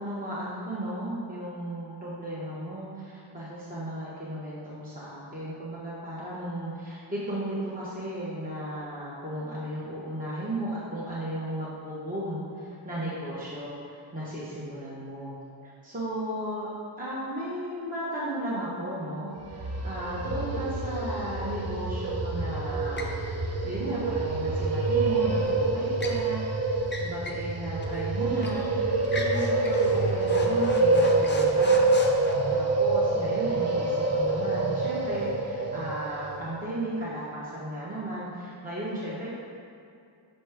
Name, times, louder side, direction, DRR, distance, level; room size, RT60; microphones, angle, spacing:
voice 1, 0.0-15.3 15.6-16.7 17.0-31.9 32.5-39.3, right 1 dB, 15° right, -8 dB, 1.0 m, -35 dB
sound 1, 19.4-36.4, right 3 dB, 35° right, 0.6 m, -26 dB
sound 2, 23.0-23.2 25.4-26.2 26.8-27.5 27.8-27.9 28.4-28.6 29.0-32.3, left 2 dB, 25° left, 0.5 m, -38 dB
5.4 x 5.3 x 3.4 m, 2.4 s
wide cardioid pair, 100°, 47 cm